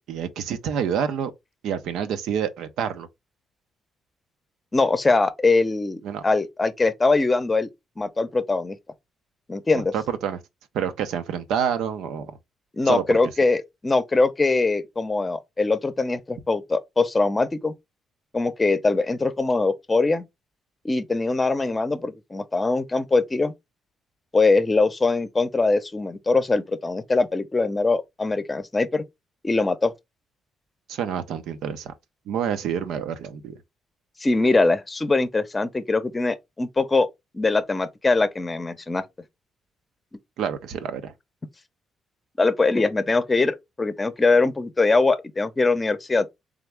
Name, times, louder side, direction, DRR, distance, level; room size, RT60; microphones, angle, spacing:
voice 1, 0.0-1.3 1.6-3.1 6.0-6.2 9.7-10.4 10.7-12.3 12.9-13.2 30.9-31.9 32.3-33.6 40.4-41.1, right 8 dB, 85° right, 0.7 m, -28 dB
voice 2, 4.7-7.7 8.0-8.8 9.5-9.9 12.7-17.7 18.3-20.2 20.8-23.5 24.3-29.0 29.4-29.9 34.2-37.1 37.3-39.0 42.4-46.3, left 3 dB, 20° left, 0.7 m, -22 dB
3.7 x 3.5 x 3.4 m
cardioid pair, 90°, 0 cm